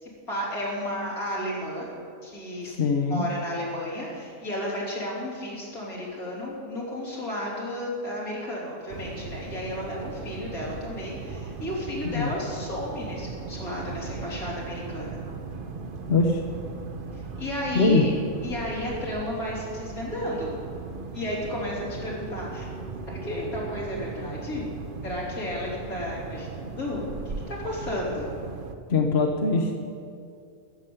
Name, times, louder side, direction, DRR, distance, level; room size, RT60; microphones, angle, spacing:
voice 1, 0.0-1.9 2.2-2.7 3.1-15.2 17.1-18.1 18.4-20.6 21.1-22.7 23.1-28.4, left 1 dB, 70° left, -5 dB, 4.0 m, -33 dB
voice 2, 2.7-3.2 12.1-12.3 16.1-16.4 17.7-18.0 28.9-29.8, left 3 dB, 50° left, 2 dB, 1.2 m, -22 dB
sound 1, 8.9-28.7, right 4 dB, 45° right, 0.9 m, -38 dB
13.5 x 7.3 x 9.6 m, 2.5 s
omnidirectional pair, 1.6 m